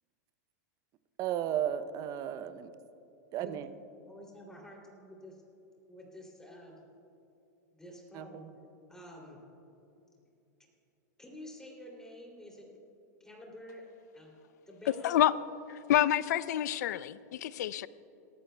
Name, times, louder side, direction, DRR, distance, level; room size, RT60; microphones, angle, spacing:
voice 1, 1.2-2.7 3.3-3.7 8.1-8.4, right 10 dB, 40° right, 12 dB, 0.6 m, -34 dB
voice 2, 4.1-5.4 5.9-6.8 7.7-8.5 8.9-9.4 11.2-12.7 13.2-13.9 14.1-14.3 14.7-15.3, left 1 dB, 5° left, -1 dB, 2.8 m, -49 dB
voice 3, 15.9-17.9, left 12 dB, 75° left, 18 dB, 0.4 m, -27 dB
18.5 x 14.0 x 2.2 m, 2.8 s
hypercardioid pair, 120°, 9 cm